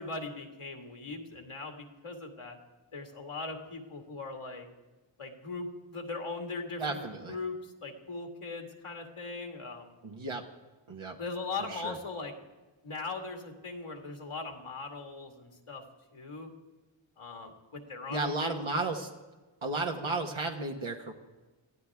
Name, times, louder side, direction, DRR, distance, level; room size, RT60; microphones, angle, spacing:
voice 1, 0.0-2.6 2.9-4.7 5.2-7.0 7.3-9.9 11.2-12.3 12.8-15.8 16.1-16.5 17.2-18.6, left 3 dB, 90° left, 4 dB, 2.3 m, -39 dB
voice 2, 6.8-7.4 10.0-10.4 10.9-11.2 11.7-12.0 18.1-19.1 19.6-21.1, right 3 dB, 70° right, 1 dB, 1.5 m, -33 dB
22.5 x 15.0 x 3.6 m, 1.2 s
wide cardioid pair, 50°, 50 cm